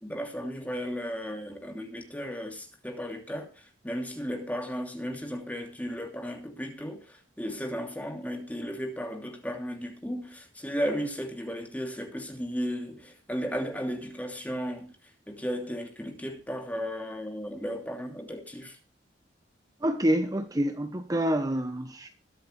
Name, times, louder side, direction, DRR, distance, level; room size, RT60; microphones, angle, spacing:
voice 1, 0.0-15.0 15.3-18.8, equal, 10° left, 2.8 m, -35 dB
voice 2, 19.8-22.1, right 1 dB, 20° right, 1.0 m, -27 dB
21.5 x 8.4 x 3.3 m
head